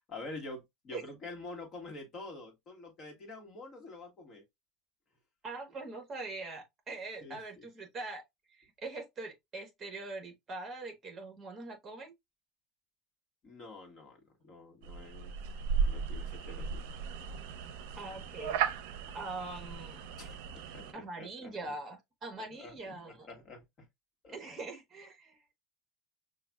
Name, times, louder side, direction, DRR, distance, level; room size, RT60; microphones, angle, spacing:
voice 1, 0.0-4.4 7.2-7.7 13.4-15.3 15.8-16.8 20.2-21.8 22.4-23.9 24.2-24.4, left 2 dB, 30° left, 1.4 m, -47 dB
voice 2, 5.4-8.2 8.5-12.1 18.0-18.6 19.1-20.0 20.9-23.3 24.3-25.4, right 3 dB, 20° right, 1.2 m, -42 dB
sound 1, 14.8-20.9, right 6 dB, 75° right, 0.5 m, -36 dB
5.7 x 2.4 x 2.3 m
cardioid pair, 160°, 0 cm